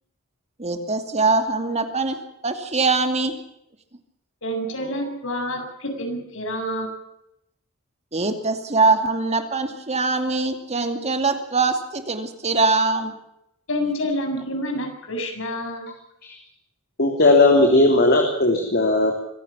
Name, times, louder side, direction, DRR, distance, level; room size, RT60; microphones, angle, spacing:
voice 1, 0.6-3.3 8.1-13.2, right 3 dB, 30° right, 7 dB, 2.4 m, -22 dB
voice 2, 4.4-6.9 13.7-15.9, equal, 65° left, 4 dB, 7.5 m, -28 dB
voice 3, 17.0-19.1, left 2 dB, 50° left, 2 dB, 3.5 m, -17 dB
25.0 x 16.0 x 7.3 m, 0.80 s
head